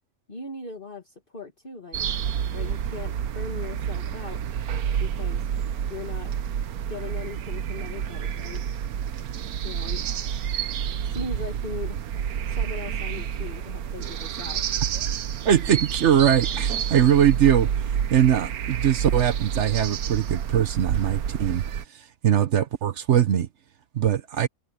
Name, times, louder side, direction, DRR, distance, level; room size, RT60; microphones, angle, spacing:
voice 1, 0.3-2.0 2.5-4.4 5.0-5.5 5.9-6.3 6.9-8.8 9.6-10.1 10.7-12.0 12.4-14.6, left 4 dB, 35° left, 2.3 m, -39 dB
sound 1, 1.9-21.8, right 9 dB, 90° right, 1.4 m, -29 dB
voice 2, 15.4-21.6 22.2-23.5 23.9-24.5, right 10 dB, 60° right, 1.0 m, -21 dB
omnidirectional pair, 1.5 m